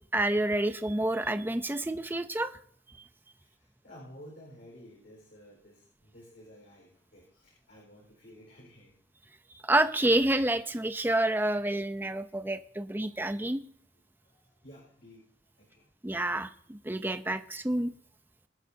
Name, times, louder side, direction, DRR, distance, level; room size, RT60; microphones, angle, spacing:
voice 1, 0.1-2.5 9.6-13.6 16.0-17.9, right 1 dB, 10° right, 10 dB, 0.6 m, -28 dB
voice 2, 3.4-8.9 12.4-12.6 14.2-15.9, equal, 70° left, -4 dB, 4.7 m, -53 dB
24.0 x 8.2 x 2.8 m, 0.65 s
head